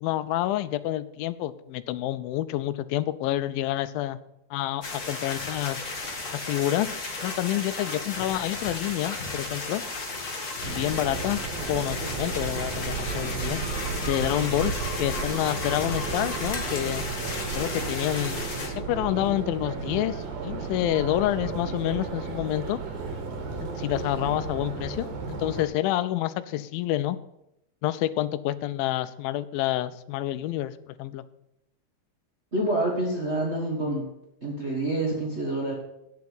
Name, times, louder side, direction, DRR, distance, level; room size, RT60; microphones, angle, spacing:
voice 1, 0.0-4.2 4.5-5.8 6.3-6.9 7.2-9.8 10.6-11.4 11.7-13.6 14.0-14.7 15.0-17.0 17.6-22.8 23.6-27.2 27.8-31.2, left 14 dB, 90° left, 13 dB, 2.3 m, -28 dB
sound 1, 4.8-18.7, left 3 dB, 55° left, 0.8 m, -34 dB
Subway metro underground, 10.6-25.6, right 4 dB, 90° right, 3.2 m, -34 dB
voice 2, 32.5-34.0 34.4-35.7, right 1 dB, 65° right, -4 dB, 0.6 m, -27 dB
8.4 x 7.2 x 7.8 m, 0.83 s
omnidirectional pair, 4.0 m